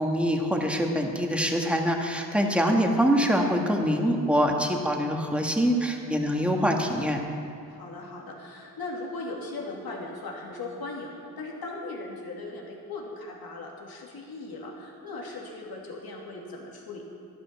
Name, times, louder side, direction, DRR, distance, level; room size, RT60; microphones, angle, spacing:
voice 1, 0.0-7.2, equal, 5° right, 1 dB, 1.8 m, -24 dB
voice 2, 7.7-17.0, left 2 dB, 70° left, -2 dB, 2.8 m, -38 dB
12.0 x 11.5 x 5.9 m, 2.5 s
cardioid pair, 60°, 39 cm